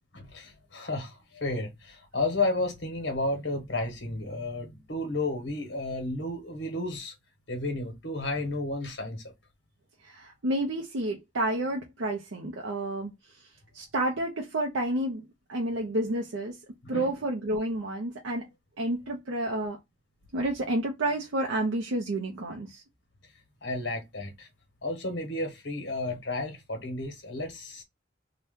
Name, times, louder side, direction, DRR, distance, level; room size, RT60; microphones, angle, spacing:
voice 1, 0.1-7.1 7.5-9.3 16.8-17.1 23.6-24.5 24.8-27.8, left 2 dB, 60° left, 1.1 m, -32 dB
voice 2, 10.0-13.1 13.7-15.2 15.5-16.6 16.9-18.5 18.8-19.8 20.3-22.8, right 1 dB, 80° right, 0.7 m, -30 dB
2.8 x 2.2 x 3.5 m
head